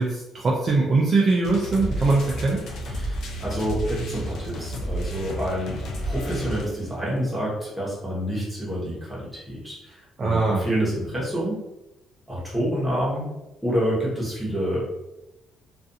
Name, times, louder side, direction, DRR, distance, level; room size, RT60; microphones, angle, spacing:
voice 1, 0.0-2.6 10.2-10.6, right 3 dB, 30° right, -3 dB, 0.3 m, -21 dB
sound 1, 1.4-7.0, right 1 dB, 55° left, 0.4 m, -31 dB
voice 2, 2.8-5.8 6.0-11.6 12.3-13.3 13.6-14.8, equal, 5° right, -7 dB, 0.9 m, -28 dB
2.4 x 2.4 x 2.6 m, 0.95 s
cardioid pair, 155°, 0 cm